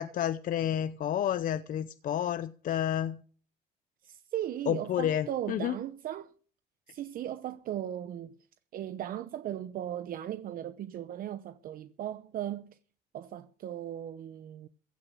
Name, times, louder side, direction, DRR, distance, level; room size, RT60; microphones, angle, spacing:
voice 1, 0.0-3.2 4.7-5.7, left 10 dB, 55° left, 0.7 m, -30 dB
voice 2, 4.0-6.3 6.9-8.4 8.7-12.8 13.1-14.7, right 11 dB, 60° right, 0.8 m, -37 dB
16.0 x 8.9 x 6.2 m
cardioid pair, 110°, 17 cm